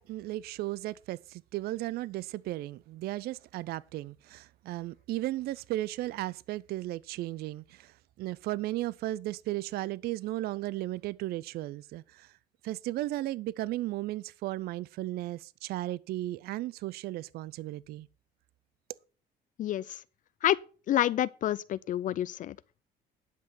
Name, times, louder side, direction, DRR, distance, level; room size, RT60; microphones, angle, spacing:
voice 1, 0.0-12.3 12.6-18.1, right 16 dB, 70° right, 0.4 m, -35 dB
voice 2, 19.6-20.0 20.4-20.6 20.9-22.6, left 12 dB, 50° left, 0.4 m, -28 dB
10.5 x 5.9 x 6.1 m
cardioid pair, 110°, 17 cm